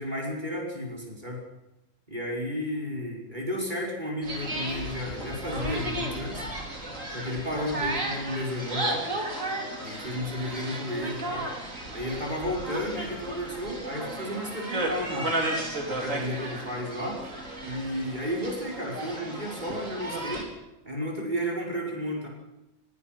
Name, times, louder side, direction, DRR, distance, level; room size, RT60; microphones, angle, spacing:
voice 1, 0.0-1.4 2.1-6.5 7.1-9.1 9.8-11.5 11.9-15.4 15.9-17.2 17.6-20.5 20.8-22.3, equal, 35° right, -1 dB, 5.5 m, -32 dB
sound 1, 4.2-20.4, right 1 dB, 85° right, 4.4 m, -34 dB
22.5 x 22.0 x 6.0 m, 0.93 s
omnidirectional pair, 1.3 m